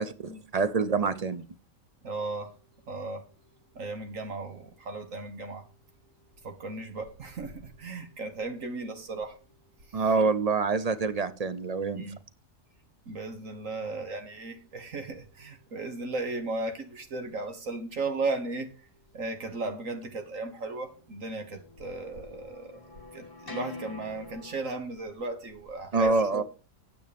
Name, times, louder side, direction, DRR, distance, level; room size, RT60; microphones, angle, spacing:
voice 1, 0.0-1.4 9.9-12.0 25.9-26.4, right 4 dB, 40° right, 0.6 m, -26 dB
voice 2, 2.0-2.6 2.9-3.3 3.8-5.6 6.4-9.4 9.9-10.1 12.0-12.2 13.1-18.9 19.1-26.4, right 3 dB, 70° right, 1.9 m, -36 dB
sound 1, 21.3-24.8, left 3 dB, 20° left, 1.0 m, -45 dB
9.2 x 7.9 x 5.1 m
omnidirectional pair, 1.4 m